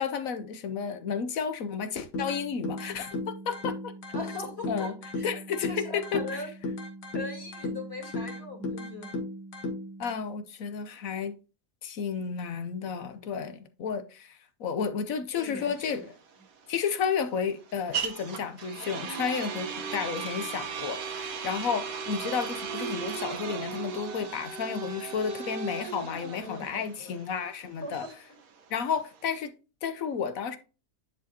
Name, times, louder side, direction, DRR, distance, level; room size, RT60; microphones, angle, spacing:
voice 1, 0.0-3.9 4.7-4.9 5.2-6.2 10.0-11.3 11.8-16.1 16.7-28.0 28.7-29.5 29.8-30.6, left 6 dB, 60° left, 1.1 m, -32 dB
sound 1, 2.1-10.1, left 1 dB, 80° left, 2.0 m, -36 dB
voice 2, 4.1-5.3 5.6-6.5 7.1-9.2 15.3-16.0 26.4-27.2 27.8-27.9, left 2 dB, 35° left, 3.3 m, -40 dB
sound 2, 15.6-29.4, right 6 dB, 60° right, 1.4 m, -37 dB
10.0 x 4.8 x 2.8 m
omnidirectional pair, 1.8 m